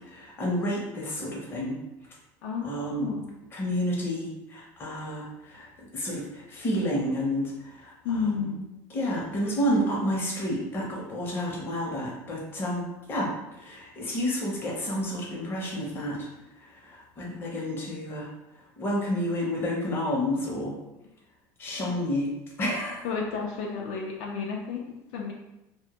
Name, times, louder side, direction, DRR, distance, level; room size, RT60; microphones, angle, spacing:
voice 1, 0.0-1.8 2.6-3.2 3.5-7.9 8.9-16.3 16.6-18.3 18.8-20.7 21.6-22.3 22.6-23.0, equal, 25° left, -3 dB, 0.6 m, -30 dB
voice 2, 2.4-3.2 8.0-8.7 21.8-22.0 23.0-25.3, left 5 dB, 70° left, -1 dB, 0.4 m, -32 dB
2.1 x 2.1 x 2.8 m, 0.93 s
cardioid pair, 140°, 8 cm